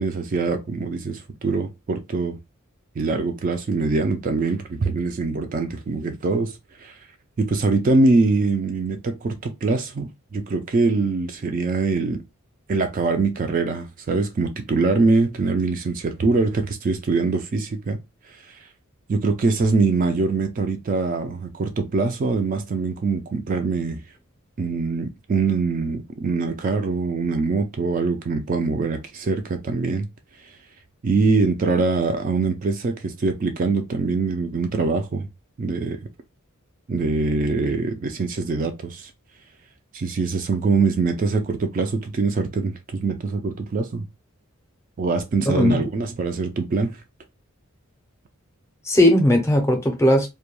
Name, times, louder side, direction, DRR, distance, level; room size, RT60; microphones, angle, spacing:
voice 1, 0.0-2.4 3.0-6.9 7.4-12.2 12.7-18.0 18.5-18.6 19.1-24.0 24.6-30.1 31.0-35.3 35.6-36.0 36.9-39.1 39.9-44.1 45.0-47.0, right 3 dB, 40° right, 0.3 m, -23 dB
voice 2, 45.5-45.9 48.8-50.3, left 1 dB, 15° left, 0.5 m, -17 dB
2.2 x 2.2 x 2.9 m
head